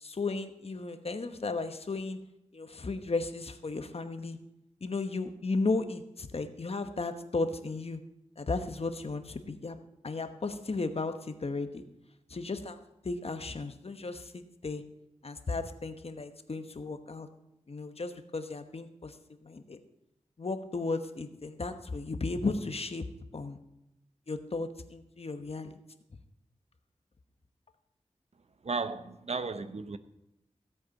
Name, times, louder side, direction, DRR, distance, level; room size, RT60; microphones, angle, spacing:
voice 1, 0.0-2.2 2.5-4.4 4.8-8.0 8.4-9.8 10.0-11.7 12.3-12.8 13.0-14.8 15.2-17.3 17.7-19.1 19.4-19.8 20.4-23.1 23.3-23.6 24.3-25.8, left 3 dB, 55° left, 1.1 m, -35 dB
voice 2, 28.6-30.0, right 4 dB, 60° right, 0.8 m, -34 dB
15.5 x 8.4 x 5.2 m
wide cardioid pair, 85°, 12 cm